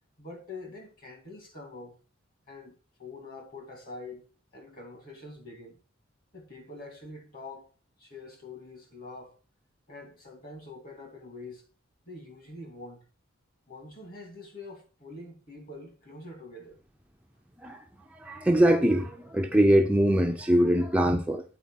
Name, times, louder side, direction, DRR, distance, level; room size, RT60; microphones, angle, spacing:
voice 1, 0.2-2.0 2.5-4.3 4.5-5.8 6.3-7.7 8.0-9.4 9.9-11.7 12.0-13.1 13.7-16.8, left 2 dB, 45° left, 2.8 m, -45 dB
voice 2, 18.1-21.4, right 1 dB, 5° right, 0.5 m, -23 dB
9.1 x 4.6 x 5.0 m
head